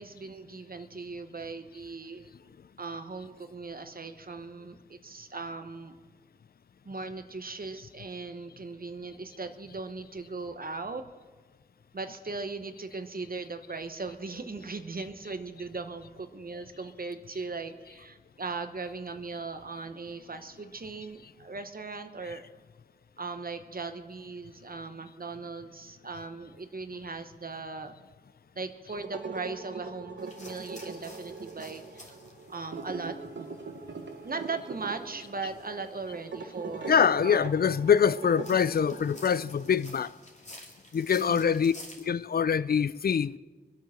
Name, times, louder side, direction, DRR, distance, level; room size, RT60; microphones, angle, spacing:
voice 1, 0.0-2.3 2.8-5.9 6.8-11.0 11.9-22.5 23.2-27.9 28.6-32.2 32.5-33.4 34.2-37.5 41.1-41.6, right 4 dB, 50° right, 1.0 m, -39 dB
sound 1, 28.9-39.7, right 4 dB, 80° right, 1.4 m, -41 dB
sound 2, 30.2-42.1, left 1 dB, 40° left, 2.6 m, -52 dB
voice 2, 36.9-40.1 40.9-41.7 42.1-43.4, left 7 dB, 55° left, 0.4 m, -24 dB
23.5 x 8.5 x 6.4 m
wide cardioid pair, 70°, 19 cm